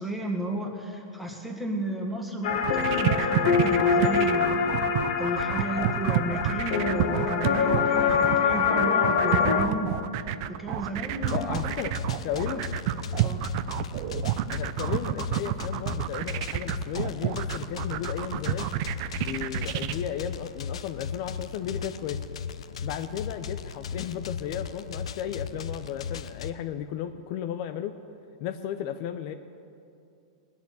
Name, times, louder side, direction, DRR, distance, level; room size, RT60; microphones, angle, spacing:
voice 1, 0.0-4.7 5.2-10.0 10.5-11.6 12.4-12.6 13.2-13.4, right 1 dB, ahead, 1 dB, 1.7 m, -33 dB
sound 1, 2.4-9.7, left 6 dB, 65° left, 1.5 m, -24 dB
sound 2, 2.5-19.9, right 13 dB, 45° right, 0.6 m, -29 dB
sound 3, 11.2-26.5, left 7 dB, 90° left, 0.7 m, -37 dB
voice 2, 11.3-12.6 14.5-18.7 19.2-22.2 22.8-27.9 28.4-29.3, left 10 dB, 45° left, 9 dB, 0.6 m, -34 dB
19.0 x 7.2 x 9.5 m, 2.5 s
supercardioid pair, 150°, 3 cm